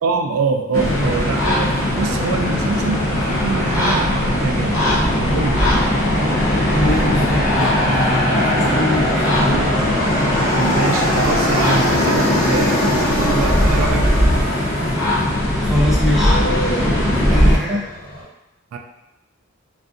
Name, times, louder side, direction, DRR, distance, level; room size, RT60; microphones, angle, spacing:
voice 1, 0.0-4.8 5.2-5.6 10.6-14.1 17.7-17.8 18.7-18.8, right 4 dB, 85° right, 6 dB, 0.3 m, -24 dB
sound 1, 0.7-17.6, left 1 dB, 75° left, 0.6 m, -19 dB
Aircraft, 0.8-18.2, left 1 dB, 35° left, 1.0 m, -24 dB
sound 2, 1.5-12.0, equal, 60° left, 1.2 m, -29 dB
voice 2, 6.7-9.7 15.6-16.4 17.1-17.8, left 1 dB, ahead, -6 dB, 0.4 m, -23 dB
2.5 x 2.4 x 2.4 m, 0.93 s
head